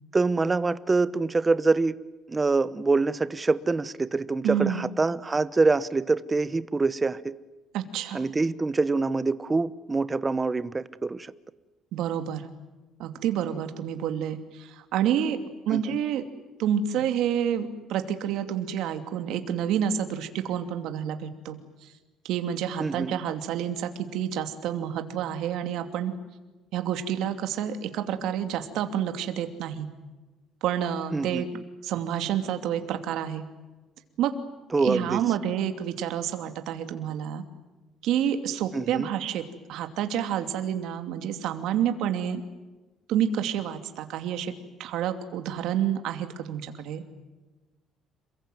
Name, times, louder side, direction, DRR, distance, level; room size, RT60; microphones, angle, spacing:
voice 1, 0.1-1.9 2.3-7.3 8.1-11.3 15.7-16.0 22.8-23.2 31.1-31.4 34.7-35.2 38.7-39.1, right 3 dB, 20° right, 16 dB, 0.9 m, -25 dB
voice 2, 4.4-4.9 7.7-8.2 11.9-12.5 13.0-15.4 15.7-16.2 16.6-21.9 22.2-26.1 26.7-29.9 30.6-31.5 31.8-33.4 34.2-34.3 34.8-37.4 38.0-42.4 43.1-44.5 44.8-47.0, right 9 dB, 75° right, 8 dB, 2.7 m, -29 dB
28.0 x 22.5 x 9.3 m, 1.2 s
cardioid pair, 140°, 0 cm